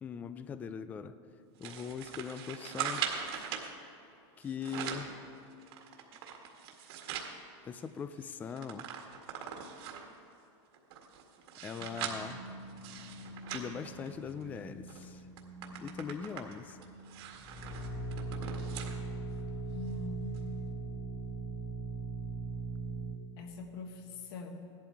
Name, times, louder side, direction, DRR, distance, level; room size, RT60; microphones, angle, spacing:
voice 1, 0.0-1.1 1.6-3.1 4.4-5.1 7.6-8.9 11.6-12.4 13.5-15.2 15.7-16.8, left 6 dB, 10° left, 12 dB, 0.3 m, -41 dB
sound 1, 1.6-3.7 4.4-5.1 5.6-7.3 7.8-7.9 8.1-10.2 10.7-14.5 14.9-15.1 15.4-19.0 19.4-19.5 20.3-20.4, right 8 dB, 55° right, 1.9 m, -41 dB
sound 2, 11.8-23.2, right 3 dB, 30° left, 1.4 m, -41 dB
voice 2, 19.7-20.4 23.4-24.7, left 4 dB, 55° left, 5 dB, 1.5 m, -44 dB
16.0 x 11.5 x 4.6 m, 2.8 s
supercardioid pair, 160°, 15 cm